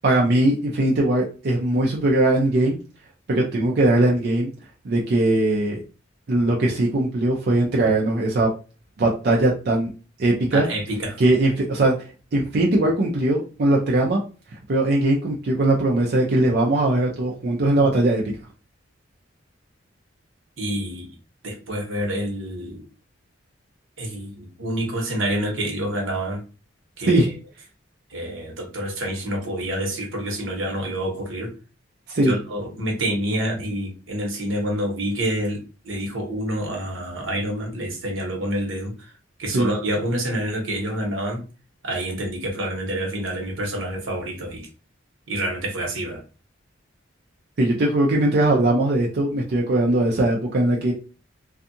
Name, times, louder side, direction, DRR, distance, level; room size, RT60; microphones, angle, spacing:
voice 1, 0.0-2.8 3.3-4.5 4.8-5.8 6.3-8.5 9.0-9.9 10.2-10.7 11.2-12.0 12.3-14.2 14.7-18.2 27.0-27.3 32.1-32.3 39.5-39.7 47.6-50.9, right 2 dB, 55° right, -2 dB, 0.5 m, -20 dB
voice 2, 10.5-11.2 20.6-21.1 21.4-22.8 24.0-26.4 27.0-27.3 28.1-31.5 32.2-39.1 39.4-41.4 41.8-44.7 45.3-46.2, right 1 dB, 85° right, 1 dB, 1.0 m, -27 dB
2.6 x 2.3 x 2.6 m, 0.34 s
head